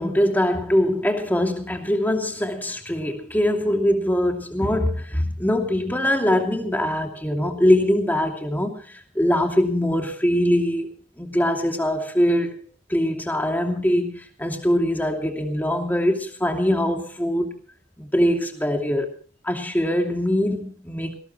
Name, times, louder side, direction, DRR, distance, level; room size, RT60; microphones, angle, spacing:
voice 1, 0.0-10.9 11.2-12.6 12.9-17.5 18.0-19.1 19.4-21.1, left 1 dB, 10° left, 3 dB, 2.8 m, -22 dB
19.0 x 18.5 x 3.2 m, 0.40 s
head